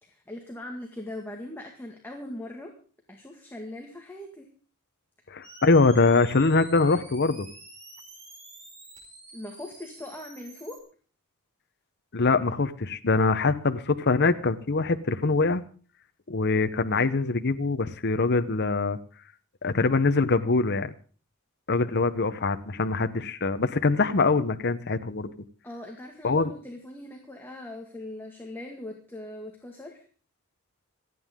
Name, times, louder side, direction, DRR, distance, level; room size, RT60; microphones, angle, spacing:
voice 1, 0.0-2.7 3.1-4.5 9.3-10.8 25.6-30.0, left 1 dB, 10° left, 1 dB, 1.9 m, -40 dB
voice 2, 5.3-7.5 12.1-15.6 16.3-19.0 19.6-20.9 21.7-25.3 26.2-26.5, left 3 dB, 50° left, 9 dB, 0.9 m, -23 dB
sound 1, 5.4-10.8, right 2 dB, 30° right, 5.0 m, -48 dB
26.5 x 9.3 x 3.7 m, 0.41 s
head